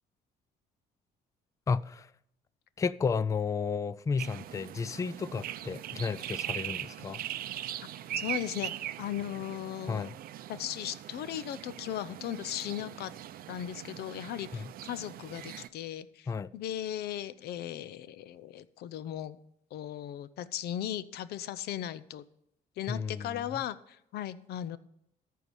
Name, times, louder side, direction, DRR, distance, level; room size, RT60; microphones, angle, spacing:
voice 1, 1.7-2.1 2.8-7.2 9.9-10.1 14.5-14.6 16.3-16.5 22.9-23.4, left 5 dB, 20° left, 0.4 m, -32 dB
sound 1, 4.2-15.7, right 12 dB, 60° right, 0.5 m, -41 dB
voice 2, 8.1-8.7 9.0-10.1 10.5-13.1 13.5-19.4 19.7-22.2 22.8-24.8, left 11 dB, 70° left, 0.7 m, -37 dB
14.0 x 4.7 x 8.3 m
cardioid pair, 110°, 17 cm